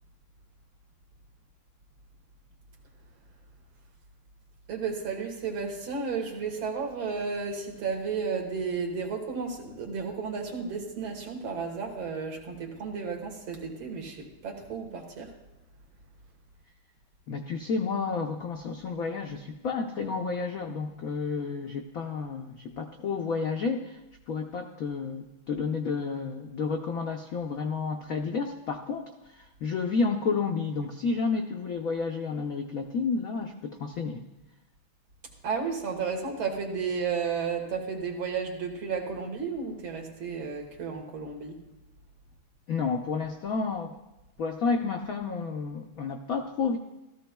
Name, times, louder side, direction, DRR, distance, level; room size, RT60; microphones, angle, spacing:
voice 1, 4.7-15.3 35.4-41.6, right 5 dB, 75° right, 1 dB, 2.3 m, -33 dB
voice 2, 17.3-24.0 24.3-34.2 42.7-43.9 44.4-46.8, left 4 dB, 75° left, 4 dB, 0.7 m, -31 dB
15.5 x 13.5 x 2.2 m, 0.98 s
omnidirectional pair, 2.3 m